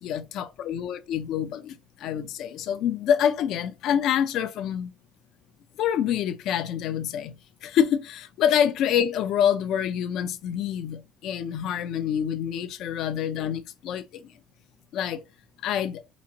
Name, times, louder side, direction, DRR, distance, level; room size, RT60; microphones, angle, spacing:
voice 1, 0.0-1.7 2.0-4.9 5.8-14.2 14.9-15.2 15.6-16.0, left 9 dB, 70° left, 0.6 m, -26 dB
4.1 x 2.5 x 4.1 m
cardioid pair, 120°, 0 cm